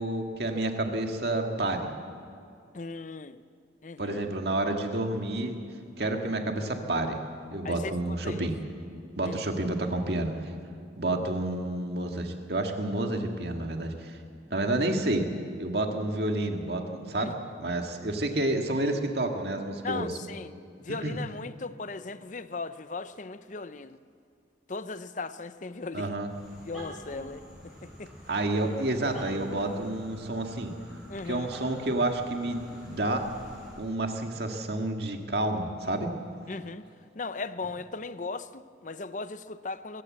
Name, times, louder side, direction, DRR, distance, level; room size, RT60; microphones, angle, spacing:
voice 1, 0.0-1.9 4.0-5.6 6.0-7.2 7.5-8.6 9.2-10.3 11.0-14.2 14.5-15.3 15.6-20.1 20.9-21.2 25.9-26.3 28.3-30.7 31.3-33.2 33.8-36.1, right 1 dB, 55° right, 3 dB, 2.0 m, -29 dB
voice 2, 2.7-3.4 3.8-4.2 7.6-7.9 8.2-8.4 9.2-9.4 17.2-17.4 19.8-24.0 24.7-26.2 26.6-28.1 31.1-31.5 36.5-36.8 37.1-40.0, left 3 dB, 40° left, 13 dB, 0.7 m, -38 dB
sound 1, 26.1-34.0, equal, ahead, 6.9 m, -47 dB
23.5 x 16.0 x 7.6 m, 2.4 s
head